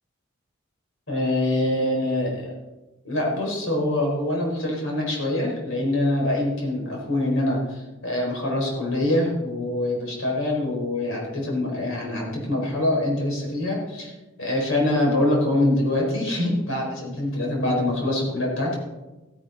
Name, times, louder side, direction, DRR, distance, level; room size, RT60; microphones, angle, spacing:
voice 1, 1.1-2.6 3.0-14.1 14.4-18.8, left 1 dB, 70° left, -2 dB, 4.3 m, -24 dB
15.0 x 9.7 x 4.0 m, 1.1 s
head